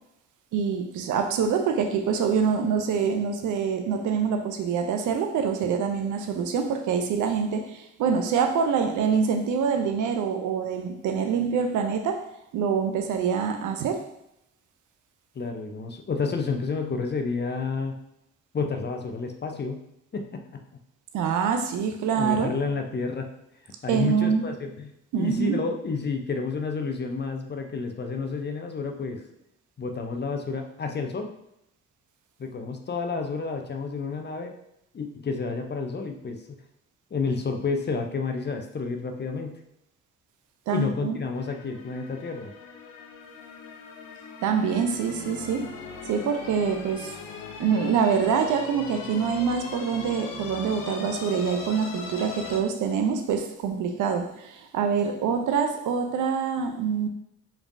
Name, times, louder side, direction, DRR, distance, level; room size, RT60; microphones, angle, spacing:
voice 1, 0.5-12.3 12.5-14.0 21.1-22.5 23.9-24.4 25.1-25.6 40.7-41.2 44.4-45.7 46.0-47.2 47.6-57.1, right 6 dB, 55° right, 6 dB, 0.6 m, -25 dB
voice 2, 15.3-17.9 18.5-19.8 20.1-20.6 22.1-23.3 23.8-29.2 29.8-31.3 32.4-34.5 34.9-36.4 37.1-39.6 40.7-42.5, left 4 dB, 30° left, 4 dB, 0.6 m, -30 dB
sound 1, 41.3-52.6, left 5 dB, 65° left, 0.7 m, -40 dB
4.9 x 3.3 x 2.6 m, 0.80 s
figure-of-eight pair, 40°, 36 cm